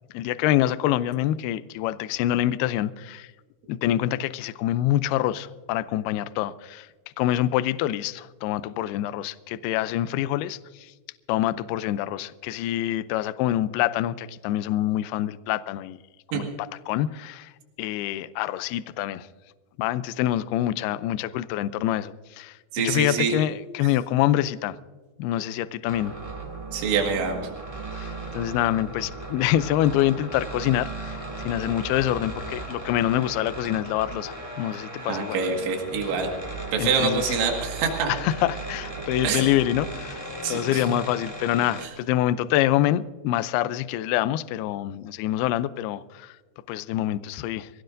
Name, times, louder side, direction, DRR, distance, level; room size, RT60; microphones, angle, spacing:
voice 1, 0.1-3.3 3.7-6.9 7.2-10.9 11.3-16.0 16.3-16.5 16.9-17.5 17.8-19.3 19.8-22.6 22.8-24.8 25.2-26.1 27.9-31.2 31.5-35.4 36.8-37.3 38.2-46.3 46.7-47.7, left 13 dB, 85° left, 13 dB, 2.3 m, -26 dB
voice 2, 22.7-23.4 26.7-27.5 35.1-36.3 36.7-38.1 39.2-39.5 40.4-40.9 41.8-41.9, right 5 dB, 85° right, 1 dB, 4.3 m, -25 dB
sound 1, 25.9-41.9, right 2 dB, 20° right, 0.9 m, -36 dB
24.0 x 17.5 x 2.6 m, 1.3 s
omnidirectional pair, 5.2 m